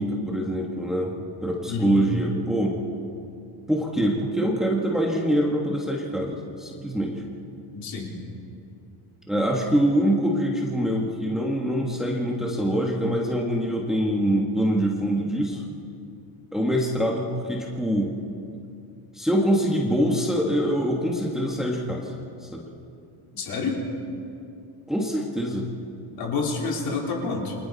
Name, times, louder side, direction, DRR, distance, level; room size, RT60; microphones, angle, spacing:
voice 1, 0.0-2.8 3.7-7.2 9.3-15.6 16.5-18.1 19.1-22.1 22.4-22.7 24.9-25.7, equal, ahead, -2 dB, 1.5 m, -24 dB
voice 2, 1.7-2.0 7.7-8.1 23.3-23.8 26.2-27.6, left 4 dB, 55° left, -2 dB, 4.1 m, -28 dB
29.0 x 23.5 x 4.1 m, 2.6 s
cardioid pair, 170°, 44 cm